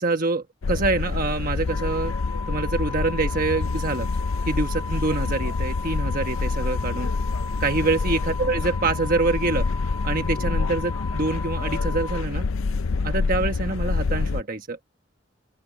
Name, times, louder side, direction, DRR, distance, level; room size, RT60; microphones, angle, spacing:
voice 1, 0.0-2.1 2.5-4.1 4.4-7.1 7.6-9.7 10.0-12.4 13.0-14.8, right 3 dB, 45° right, 1.2 m, -25 dB
sound 1, 0.6-14.4, left 4 dB, 80° left, 0.5 m, -27 dB
sound 2, 1.7-12.2, left 3 dB, 15° left, 4.1 m, -37 dB
open air
head